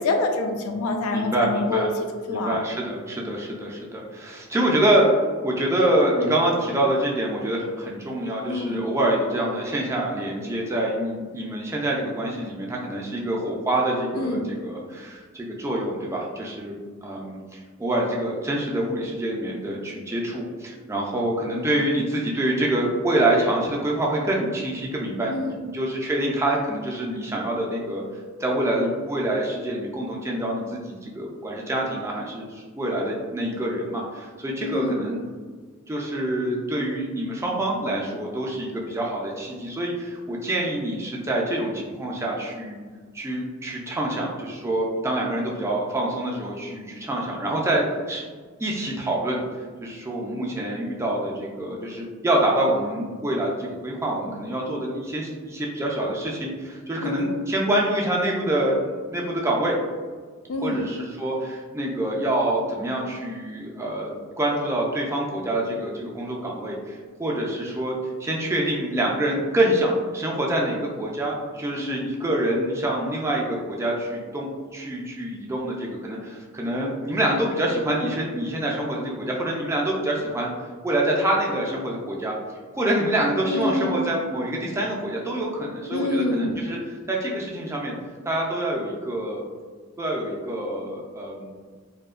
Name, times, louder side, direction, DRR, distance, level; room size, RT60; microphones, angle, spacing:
voice 1, 0.0-1.9 2.3-2.6 8.5-8.8 14.2-14.4 25.3-25.6 34.6-35.0 57.0-57.4 60.5-60.8 71.8-72.1 83.5-84.1 85.9-86.6, left 2 dB, 90° left, 4 dB, 0.3 m, -26 dB
voice 2, 1.1-1.9 2.3-5.1 5.4-16.8 17.0-25.5 25.7-28.0 28.4-35.2 35.9-42.8 43.1-48.2 48.6-59.8 60.6-80.5 80.8-82.4 82.7-88.0 88.3-89.4 90.0-91.5, right 1 dB, 15° right, -2 dB, 0.3 m, -26 dB
2.6 x 2.1 x 2.3 m, 1.5 s
head